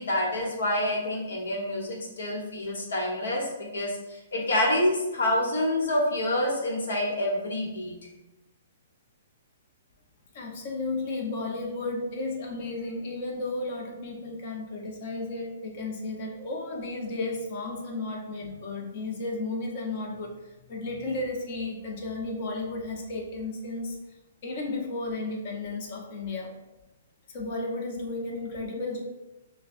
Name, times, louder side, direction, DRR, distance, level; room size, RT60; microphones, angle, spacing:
voice 1, 0.0-8.1, left 1 dB, 85° left, -1 dB, 1.2 m, -27 dB
voice 2, 10.3-20.4 20.7-24.0 24.4-26.5 27.3-29.0, left 2 dB, 50° left, 0 dB, 0.9 m, -33 dB
6.4 x 2.2 x 2.6 m, 1.0 s
hypercardioid pair, 145°, 0 cm